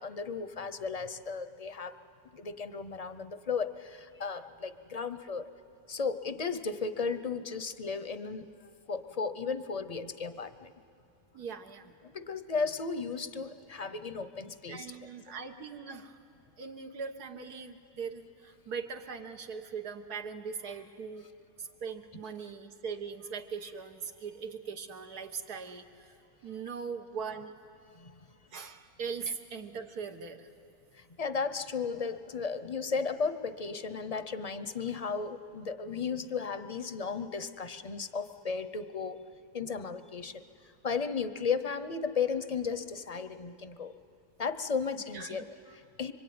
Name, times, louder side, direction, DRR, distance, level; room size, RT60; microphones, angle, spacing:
voice 1, 0.0-2.0 2.3-5.5 5.9-8.5 8.9-10.7 12.0-14.9 27.9-28.1 31.2-39.2 39.5-40.4 40.8-43.9 44.4-45.5 45.7-46.1, left 5 dB, 35° left, 12 dB, 0.6 m, -35 dB
voice 2, 11.3-12.0 14.7-16.2 16.6-21.3 21.6-26.2 26.4-27.5 28.5-30.5 44.9-45.8, right 6 dB, 90° right, 6 dB, 1.9 m, -40 dB
25.5 x 24.5 x 9.5 m, 2.6 s
omnidirectional pair, 1.6 m